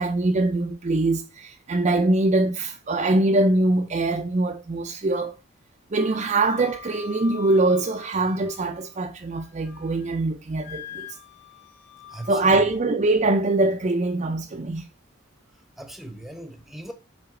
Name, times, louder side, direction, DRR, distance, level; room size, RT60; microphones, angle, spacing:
voice 1, 0.0-5.4 5.9-11.1 12.3-14.8, right 2 dB, 35° right, 0.5 m, -23 dB
Wind instrument woodwind instrument, 6.0-9.0 9.4-10.1 10.6-12.8, left 7 dB, 60° left, 1.8 m, -43 dB
voice 2, 12.1-12.6 15.8-16.9, right 1 dB, ahead, 0.9 m, -39 dB
7.7 x 3.8 x 3.7 m
head